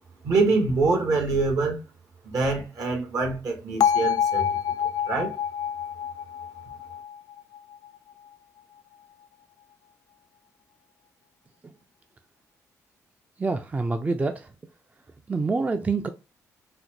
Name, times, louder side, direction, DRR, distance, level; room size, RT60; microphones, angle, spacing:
voice 1, 0.2-1.8 2.2-4.5 4.8-5.3, right 3 dB, 65° right, 1.3 m, -25 dB
Bell, 3.8-7.9, left 8 dB, 60° left, 0.3 m, -27 dB
voice 2, 13.4-14.5 15.3-16.1, right 3 dB, 25° right, 0.4 m, -26 dB
4.1 x 2.1 x 2.9 m
cardioid pair, 85°, 6 cm